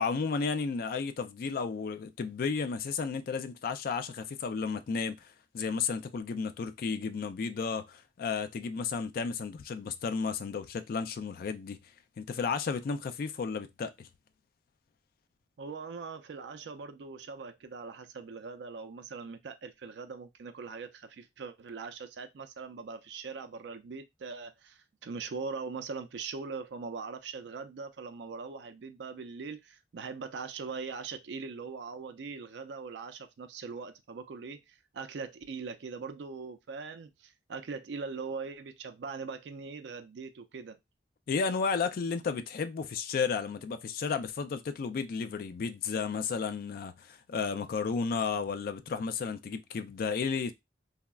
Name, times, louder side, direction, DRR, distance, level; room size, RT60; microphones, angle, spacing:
voice 1, 0.0-11.8 12.2-14.1 41.3-50.5, left 5 dB, 55° left, 0.3 m, -33 dB
voice 2, 15.6-40.8, right 4 dB, 75° right, 0.4 m, -41 dB
3.5 x 2.0 x 2.3 m
head